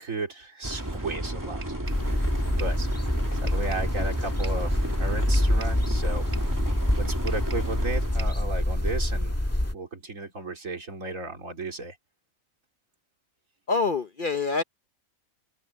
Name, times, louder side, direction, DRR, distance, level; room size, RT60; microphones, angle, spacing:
voice 1, 0.0-1.6 2.0-2.9 3.4-6.3 7.0-9.3 9.7-12.0, right 2 dB, 70° right, 3.7 m, -34 dB
sound 1, 0.6-8.2, right 1 dB, 15° right, 2.1 m, -33 dB
sound 2, 1.6-2.1 2.6-2.8 3.5-3.9 4.4-4.7 5.3-5.8 6.3-6.6 7.3-7.8 8.2-8.5, right 4 dB, 40° right, 2.4 m, -45 dB
sound 3, 1.8-9.7, left 1 dB, 10° left, 1.7 m, -26 dB
voice 2, 13.7-14.6, left 4 dB, 45° left, 0.9 m, -25 dB
omnidirectional pair, 1.4 m